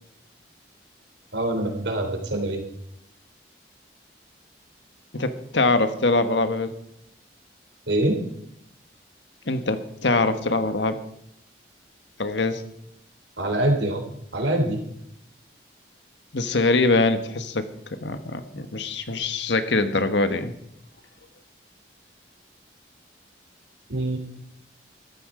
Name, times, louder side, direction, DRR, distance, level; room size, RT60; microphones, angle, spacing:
voice 1, 1.3-2.6 7.9-8.2 13.4-14.0 14.3-14.8 23.9-24.2, right 1 dB, 85° right, 3 dB, 3.4 m, -24 dB
voice 2, 5.1-6.7 9.5-11.0 12.2-12.6 16.3-20.5, left 3 dB, 80° left, 9 dB, 1.4 m, -23 dB
14.0 x 13.0 x 5.0 m, 0.76 s
head